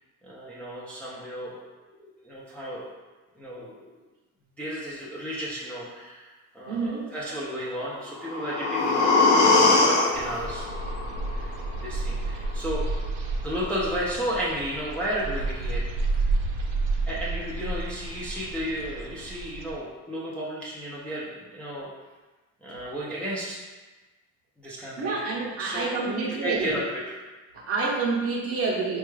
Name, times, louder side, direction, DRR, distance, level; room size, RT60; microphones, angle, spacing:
voice 1, 0.2-1.6 2.0-2.9 3.3-3.9 4.6-11.0 11.4-11.5 11.8-12.9 13.4-15.9 17.1-21.9 22.6-23.6 24.6-25.1 25.6-27.2, equal, 5° left, -7 dB, 0.4 m, -33 dB
voice 2, 6.7-7.0 25.0-26.8 27.5-29.0, right 3 dB, 45° right, -2 dB, 0.7 m, -28 dB
sound 1, 8.0-12.0 12.4-12.5, left 3 dB, 55° left, 0.7 m, -22 dB
sound 2, 10.1-19.7, right 3 dB, 75° right, 0.6 m, -31 dB
4.3 x 2.3 x 3.1 m, 1.2 s
cardioid pair, 160°, 32 cm